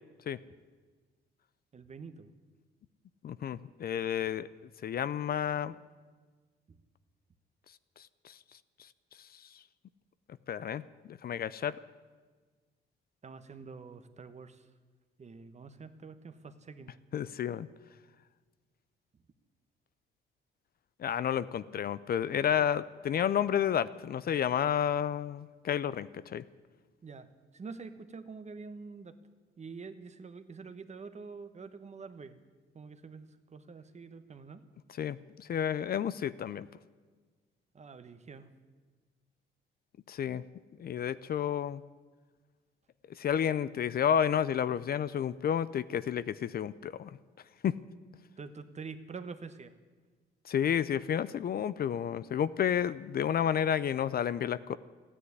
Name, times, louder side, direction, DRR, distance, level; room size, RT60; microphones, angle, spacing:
voice 1, 1.7-2.3 6.7-6.8 13.2-14.6 15.2-16.9 22.6-22.7 27.0-27.3 27.5-29.2 29.6-32.4 32.7-34.6 37.7-38.5 48.4-49.7, right 4 dB, 35° right, 10 dB, 1.1 m, -46 dB
voice 2, 3.2-4.5 4.8-5.8 8.2-8.3 10.5-10.8 11.1-11.8 17.1-17.7 21.0-26.4 34.9-36.7 40.1-40.4 40.8-41.8 43.2-47.1 47.6-47.7 50.5-54.8, left 9 dB, 50° left, 16 dB, 0.5 m, -31 dB
14.0 x 9.9 x 9.5 m, 1.4 s
cardioid pair, 90°, 20 cm